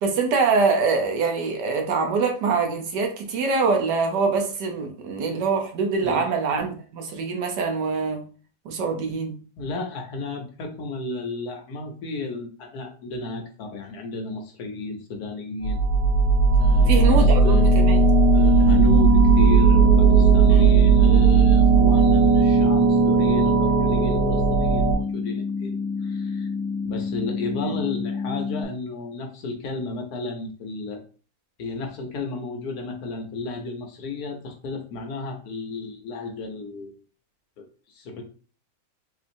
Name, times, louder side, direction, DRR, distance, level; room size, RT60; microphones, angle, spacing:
voice 1, 0.0-8.3 8.6-9.4 16.9-18.1 20.5-20.8 27.6-27.7, right 4 dB, 70° right, 1.3 m, -24 dB
voice 2, 9.6-15.8 16.6-17.7 18.3-25.8 26.0-26.5 26.8-31.0 31.6-36.9 37.6-38.2, left 3 dB, 65° left, 1.1 m, -33 dB
sound 1, 15.6-24.9, right 4 dB, 35° left, 1.2 m, -16 dB
sound 2, 18.6-28.6, left 5 dB, 85° left, 1.4 m, -29 dB
4.3 x 2.7 x 2.6 m
omnidirectional pair, 1.9 m